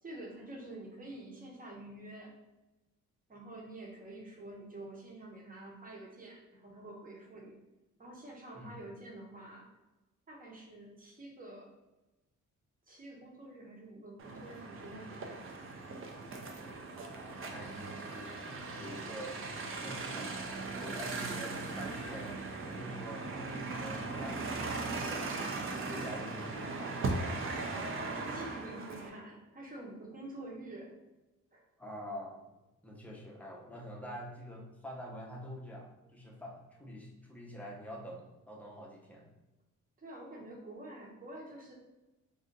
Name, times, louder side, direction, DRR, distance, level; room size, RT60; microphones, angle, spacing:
voice 1, 0.0-2.3 3.3-7.6 8.0-9.7 10.3-11.7 12.9-15.7 27.9-30.9 31.5-31.6 40.0-41.7, right 1 dB, 25° right, -1 dB, 0.9 m, -48 dB
sound 1, 14.2-29.1, right 3 dB, 40° right, 0.5 m, -39 dB
voice 2, 16.9-18.3 18.7-19.4 19.7-22.3 22.6-27.0 31.8-32.4 32.8-39.3, equal, 5° left, -2 dB, 0.6 m, -46 dB
2.6 x 2.4 x 3.8 m, 1.0 s
cardioid pair, 110°, 32 cm